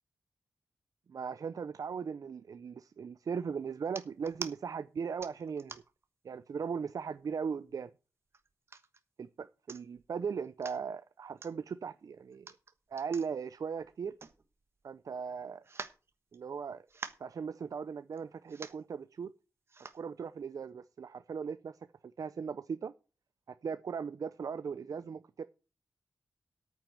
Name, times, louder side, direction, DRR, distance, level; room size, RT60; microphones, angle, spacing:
voice 1, 1.1-5.8 6.2-7.9 9.2-12.5 12.9-14.1 14.8-15.6 16.3-16.9 17.2-19.3 19.9-21.8 22.0-22.9 23.6-25.4, right 6 dB, 55° right, 0.6 m, -38 dB
sound 1, 3.8-4.5 5.2-6.0 6.6-6.7 7.1-7.7 8.3-9.0 9.4-9.5 9.7-10.1 10.4-10.8 11.4-11.5 12.3-14.8 15.1-15.2 15.6-16.6 16.9-17.3 18.1-18.2 18.5-18.9 19.7-20.0 20.6-20.7, right 4 dB, 40° right, 1.2 m, -46 dB
9.1 x 7.5 x 7.8 m
wide cardioid pair, 160°, 7 cm